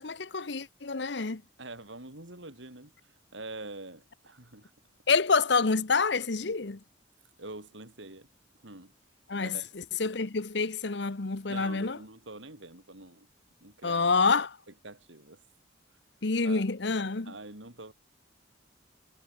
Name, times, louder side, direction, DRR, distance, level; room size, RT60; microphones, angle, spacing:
voice 1, 0.0-1.4 5.1-6.8 9.3-12.0 13.8-14.6 16.2-17.3, left 4 dB, 65° left, 1.0 m, -27 dB
voice 2, 1.6-2.9 3.3-4.7 7.4-8.3 8.6-8.9 9.4-9.7 11.5-13.3 13.6-14.1 14.8-15.4 16.4-16.7 17.2-17.9, right 2 dB, 75° right, 4.9 m, -45 dB
head